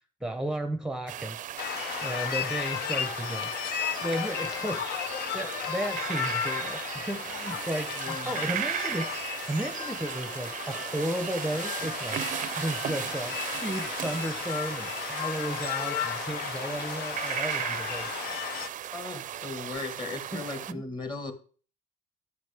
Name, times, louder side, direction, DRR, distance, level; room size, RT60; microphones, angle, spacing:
voice 1, 0.2-3.5 4.0-4.9 5.3-9.1 9.5-12.2 12.6-18.1 20.3-20.8, right 1 dB, 5° right, 7 dB, 0.7 m, -34 dB
sound 1, 1.1-20.7, right 11 dB, 50° right, 0.5 m, -36 dB
sound 2, 1.6-18.7, left 9 dB, 70° left, 0.6 m, -34 dB
voice 2, 8.0-8.5 18.9-21.3, left 3 dB, 25° left, 7 dB, 1.5 m, -37 dB
9.2 x 8.2 x 3.4 m, 0.40 s
cardioid pair, 110°, 17 cm